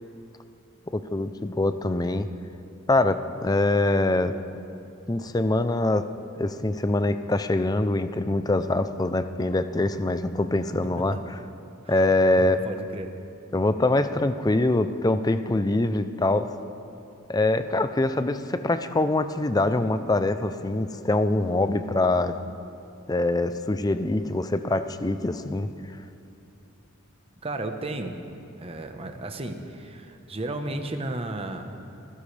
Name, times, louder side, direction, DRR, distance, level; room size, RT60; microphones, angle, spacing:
voice 1, 0.9-2.3 2.9-4.3 5.1-6.1 6.4-11.2 11.9-12.6 13.5-16.5 17.3-22.3 23.1-25.7, left 2 dB, 20° left, 11 dB, 0.5 m, -24 dB
voice 2, 12.4-13.1 27.4-28.2 28.6-31.7, right 2 dB, 30° right, 5 dB, 1.0 m, -34 dB
26.5 x 15.5 x 3.4 m, 2.7 s
head